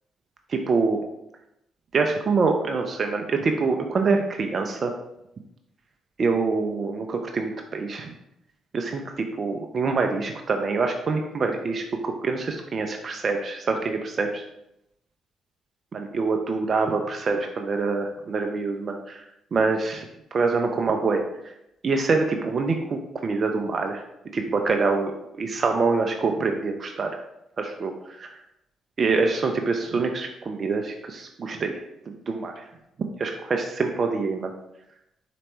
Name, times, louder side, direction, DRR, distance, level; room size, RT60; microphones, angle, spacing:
voice 1, 0.5-1.0 1.9-4.9 6.2-8.1 8.7-14.4 15.9-19.2 19.5-20.0 20.3-21.5 21.8-24.0 24.3-27.2 27.6-28.3 29.0-32.6 33.2-34.5, right 4 dB, 45° right, 4 dB, 0.4 m, -25 dB
4.3 x 3.0 x 2.9 m, 0.83 s
hypercardioid pair, 45°, 0 cm